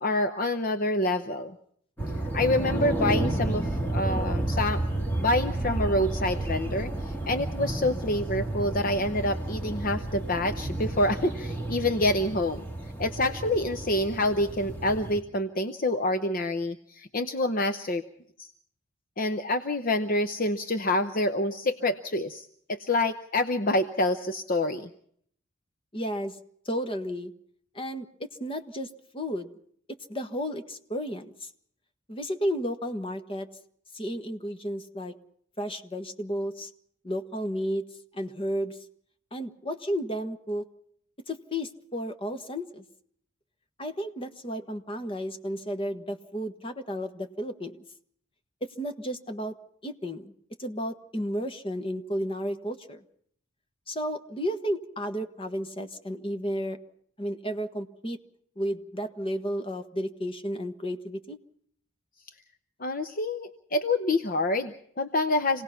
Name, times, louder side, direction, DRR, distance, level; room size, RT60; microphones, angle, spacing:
voice 1, 0.0-1.6 2.3-4.8 5.2-12.6 13.0-18.0 18.4-18.5 19.2-24.9 62.8-65.6, left 1 dB, 45° left, 9 dB, 0.8 m, -27 dB
sound 1, 2.0-15.2, right 1 dB, 10° left, 2.3 m, -31 dB
voice 2, 25.9-26.4 26.6-27.3 27.7-29.5 30.1-31.5 32.1-33.5 33.9-35.1 35.6-36.7 37.0-37.8 38.1-38.8 39.3-40.6 41.3-42.8 43.8-47.8 48.8-49.5 49.8-50.3 50.6-53.0 53.9-56.8 57.2-58.2 58.6-61.4, equal, 25° left, 7 dB, 1.4 m, -32 dB
27.0 x 18.0 x 5.8 m, 0.65 s
head